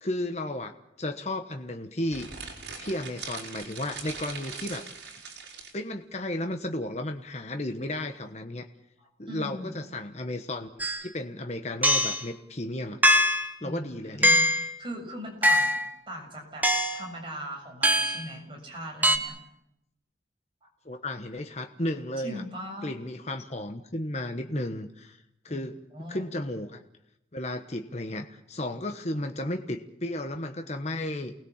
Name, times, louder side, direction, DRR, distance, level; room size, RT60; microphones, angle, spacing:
voice 1, 0.0-2.3 2.8-4.9 5.7-8.7 9.2-13.0 13.6-14.3 20.8-22.4 22.8-25.8 26.1-26.8 27.3-31.3, left 1 dB, 35° left, 6 dB, 1.2 m, -34 dB
sound 1, 2.1-5.8, right 5 dB, 65° right, 5.8 m, -41 dB
voice 2, 9.3-9.8 13.6-14.4 14.8-15.8 16.1-16.7 16.9-19.4 20.6-20.7 22.2-22.9 25.5-25.6 25.9-26.2, equal, 25° right, 1 dB, 7.0 m, -39 dB
sound 2, 10.8-11.0 11.8-12.2 13.0-13.5 14.2-14.7 15.4-15.9 16.6-17.0 17.8-18.2 19.0-19.2, equal, 10° right, 1.3 m, -22 dB
29.0 x 20.0 x 7.3 m, 0.83 s
head